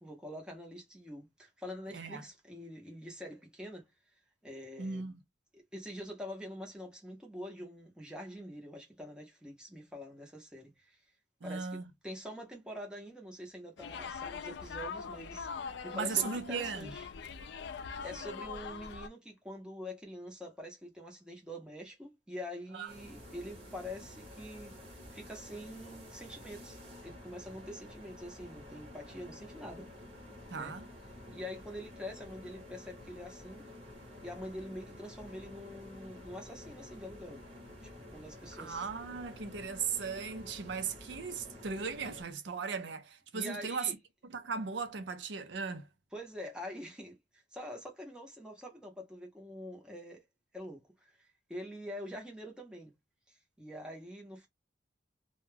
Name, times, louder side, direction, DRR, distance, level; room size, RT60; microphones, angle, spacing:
voice 1, 0.0-3.9 4.4-5.1 5.5-11.0 11.4-15.5 15.8-17.1 18.0-24.8 25.1-29.9 30.5-30.7 31.3-33.7 34.2-37.4 38.0-38.9 43.3-44.0 46.1-50.2 50.5-52.9 53.3-54.5, equal, 5° right, 0.7 m, -45 dB
voice 2, 4.8-5.1 11.4-11.8 15.9-16.9 22.7-22.9 30.5-30.8 38.6-43.9 44.3-45.8, right 5 dB, 75° right, 0.5 m, -37 dB
sound 1, 13.8-19.1, left 6 dB, 70° left, 0.4 m, -42 dB
sound 2, 22.9-42.2, left 1 dB, 30° right, 0.9 m, -50 dB
2.2 x 2.2 x 3.1 m
head